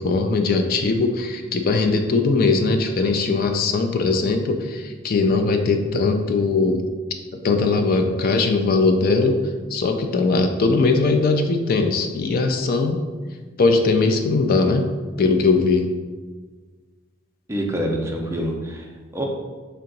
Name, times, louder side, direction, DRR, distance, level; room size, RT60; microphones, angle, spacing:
voice 1, 0.0-6.8 7.4-9.4 9.7-13.0 13.6-14.9 15.2-15.9, left 3 dB, 45° left, 6 dB, 0.3 m, -20 dB
voice 2, 17.5-19.3, equal, 15° right, 0 dB, 0.5 m, -26 dB
3.4 x 2.8 x 3.8 m, 1.4 s
head